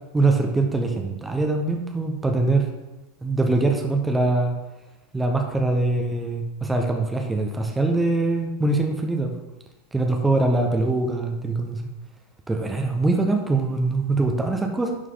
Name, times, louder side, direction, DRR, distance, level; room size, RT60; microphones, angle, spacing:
voice 1, 0.1-2.7 3.2-4.5 5.1-9.3 9.9-11.8 12.5-15.0, right 2 dB, 10° right, 3 dB, 0.9 m, -23 dB
11.0 x 4.7 x 3.9 m, 1.1 s
figure-of-eight pair, 90°, 0 cm